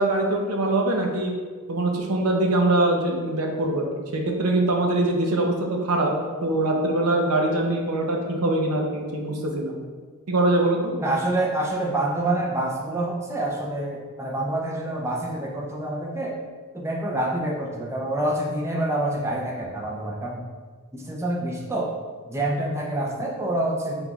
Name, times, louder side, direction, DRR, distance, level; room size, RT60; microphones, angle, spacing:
voice 1, 0.0-1.3 1.7-5.6 5.8-6.1 6.4-9.7 10.3-10.9, right 2 dB, 90° right, 1 dB, 0.7 m, -23 dB
voice 2, 11.0-16.4 16.7-20.5 20.9-21.9 22.3-24.0, right 1 dB, 10° right, -2 dB, 0.5 m, -27 dB
5.6 x 3.5 x 2.3 m, 1.5 s
head